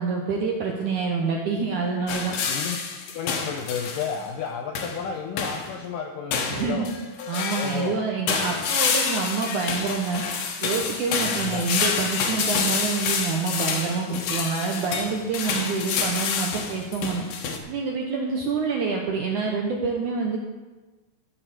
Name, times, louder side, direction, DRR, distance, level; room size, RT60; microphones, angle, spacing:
voice 1, 0.0-2.3 6.5-6.9 7.3-10.2 10.6-17.2 17.7-20.4, right 4 dB, 75° right, 0 dB, 1.8 m, -27 dB
sound 1, 2.1-4.2 4.7-5.1 5.4-5.7 6.3-7.9 8.3-17.6, left 5 dB, 65° left, 2.8 m, -28 dB
voice 2, 3.1-7.0 7.6-8.0 11.2-11.7, left 6 dB, 85° left, 3 dB, 1.9 m, -32 dB
13.5 x 6.3 x 6.7 m, 1.3 s
omnidirectional pair, 4.7 m